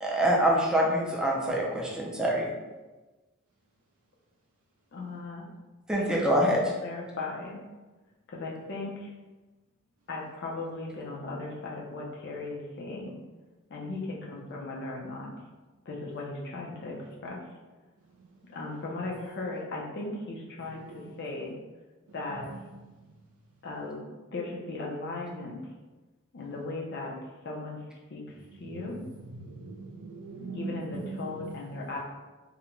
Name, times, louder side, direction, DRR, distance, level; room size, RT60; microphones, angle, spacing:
voice 1, 0.0-2.5 5.9-6.6, equal, 5° right, -3 dB, 0.4 m, -25 dB
voice 2, 4.9-5.5 5.9-6.1 6.8-7.6 8.3-9.1 10.1-13.1 13.7-15.3 15.9-17.0 17.2-17.4 18.5-21.5 22.1-22.5 23.6-25.6 26.3-27.1 27.4-27.8 28.1-28.2 28.6-29.0 30.5-32.0, left 2 dB, 50° left, -2 dB, 0.5 m, -37 dB
voice 3, 29.3-31.6, right 3 dB, 80° right, -3 dB, 0.4 m, -40 dB
2.4 x 2.1 x 2.9 m, 1.2 s
head